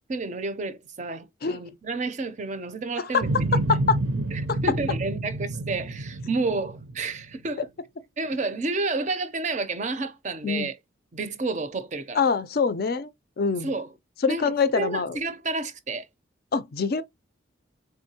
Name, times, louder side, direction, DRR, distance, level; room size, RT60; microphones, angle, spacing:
voice 1, 0.1-3.6 4.3-7.7 8.2-10.8 11.1-12.2 13.6-13.9 14.3-16.1, right 3 dB, 40° right, 0.5 m, -30 dB
sound 1, 3.2-7.5, right 2 dB, 80° right, 0.6 m, -29 dB
voice 2, 12.1-13.1 13.4-13.7 14.2-15.2 16.5-17.0, left 5 dB, 50° left, 0.4 m, -24 dB
3.6 x 3.5 x 2.7 m
head